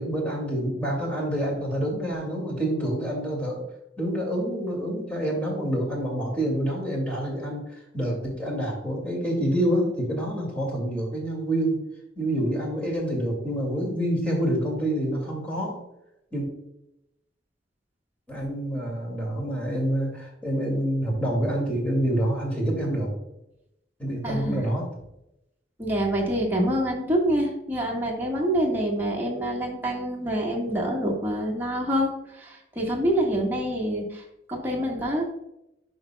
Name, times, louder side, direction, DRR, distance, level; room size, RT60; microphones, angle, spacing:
voice 1, 0.0-3.6 4.0-7.7 7.9-11.8 12.2-15.8 16.3-16.5 18.3-23.1 24.0-24.9, right 1 dB, 10° left, -3 dB, 2.2 m, -27 dB
voice 2, 24.2-24.6 25.8-34.2 34.5-35.3, right 1 dB, 10° right, -2 dB, 1.5 m, -26 dB
11.0 x 5.2 x 2.3 m, 0.83 s
head